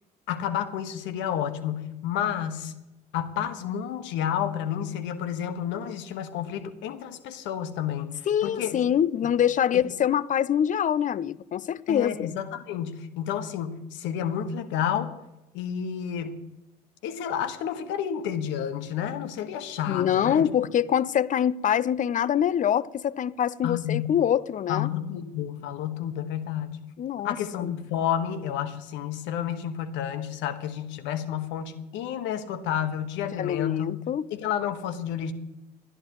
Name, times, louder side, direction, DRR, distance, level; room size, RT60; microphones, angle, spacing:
voice 1, 0.3-2.7 3.1-8.9 9.2-9.3 9.7-9.8 11.9-15.1 15.5-16.4 17.0-20.5 23.6-24.1 24.7-26.8 27.2-34.0 34.3-35.3, left 9 dB, 60° left, 1.7 m, -30 dB
voice 2, 8.3-12.3 19.9-24.9 27.0-27.7 33.4-34.2, left 9 dB, 35° left, 0.7 m, -25 dB
28.0 x 11.0 x 3.2 m
figure-of-eight pair, 55°, 21 cm